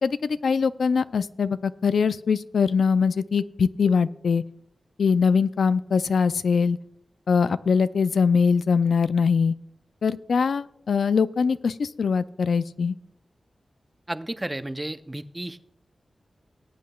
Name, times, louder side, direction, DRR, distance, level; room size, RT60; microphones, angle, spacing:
voice 1, 0.0-4.4 5.0-6.8 7.3-9.5 10.0-13.0, left 5 dB, 80° left, 14 dB, 0.3 m, -22 dB
voice 2, 14.1-15.6, right 1 dB, 15° right, 12 dB, 0.5 m, -32 dB
20.0 x 8.4 x 2.3 m, 0.81 s
cardioid pair, 70°, 0 cm